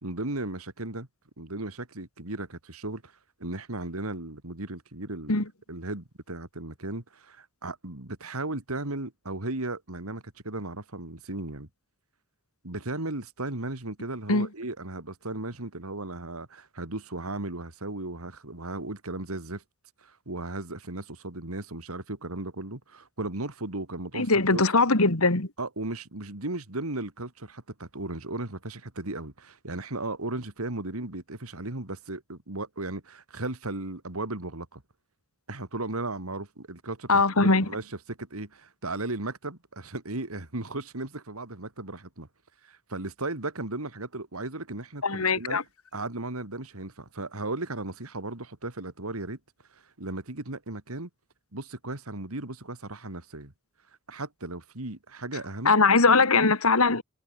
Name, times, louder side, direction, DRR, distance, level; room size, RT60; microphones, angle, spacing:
voice 1, 0.0-1.1 1.4-3.1 3.4-5.4 5.7-11.7 12.6-19.6 20.0-24.6 25.6-34.8 35.5-42.3 42.6-45.6 45.9-49.4 49.7-51.1 51.5-53.5 54.1-55.7, right 2 dB, 90° right, 3.1 m, -36 dB
voice 2, 24.1-25.5 37.1-37.7 45.0-45.6 55.6-57.0, left 3 dB, 85° left, 3.0 m, -21 dB
head